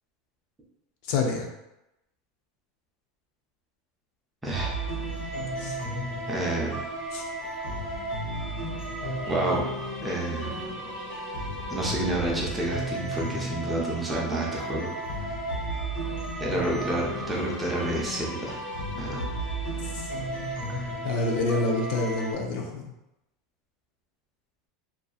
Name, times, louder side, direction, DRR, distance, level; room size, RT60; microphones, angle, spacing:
voice 1, 1.1-1.5 5.6-5.8 7.1-7.2 19.8-20.1 21.0-22.9, left 3 dB, 55° left, 2 dB, 0.4 m, -27 dB
voice 2, 4.4-4.7 6.3-6.8 9.3-9.7 10.0-10.6 11.7-14.9 16.4-18.6 19.0-19.2, right 2 dB, 10° right, -4 dB, 0.5 m, -29 dB
sound 1, 4.5-22.3, right 1 dB, 90° left, 0.9 m, -33 dB
2.7 x 2.3 x 2.3 m, 0.91 s
supercardioid pair, 165°, 0 cm